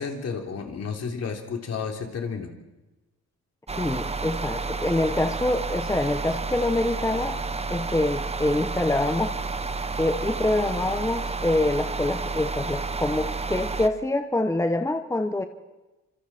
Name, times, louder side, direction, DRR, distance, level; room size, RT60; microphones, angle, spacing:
voice 1, 0.0-2.5, left 5 dB, 55° left, 3 dB, 3.6 m, -31 dB
sound 1, 3.7-13.9, right 3 dB, 20° right, 1.2 m, -30 dB
voice 2, 3.8-7.4 7.7-9.4 10.0-15.4, left 2 dB, 10° left, 8 dB, 1.1 m, -25 dB
26.0 x 26.0 x 4.5 m, 1.1 s
cardioid pair, 90°, 30 cm